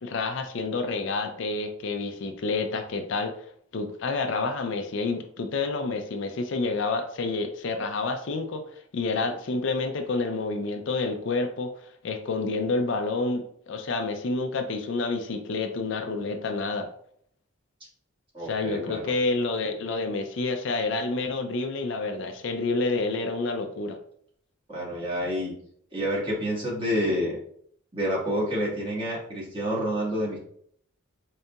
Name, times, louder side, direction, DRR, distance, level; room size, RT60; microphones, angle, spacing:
voice 1, 0.0-3.3 3.7-11.7 12.0-16.9 18.4-24.0, left 3 dB, 60° left, 6 dB, 0.4 m, -29 dB
voice 2, 18.3-19.1 24.7-25.5 25.9-27.4 27.9-30.4, equal, 25° right, -6 dB, 1.4 m, -28 dB
4.1 x 3.7 x 2.2 m, 0.64 s
head